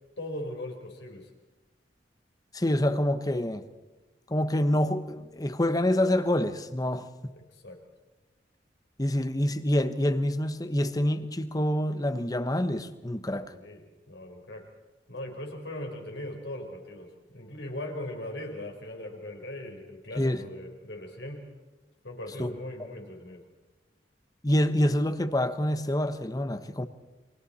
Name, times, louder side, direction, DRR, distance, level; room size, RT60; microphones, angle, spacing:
voice 1, 0.2-1.3 7.5-7.8 13.5-14.7 15.1-21.5 22.0-23.4, left 1 dB, 75° left, 4.4 m, -39 dB
voice 2, 2.5-3.6 4.3-7.1 9.0-13.5 20.2-20.4 22.4-22.5 24.4-26.9, left 1 dB, 20° left, 1.1 m, -26 dB
29.5 x 23.5 x 4.3 m
head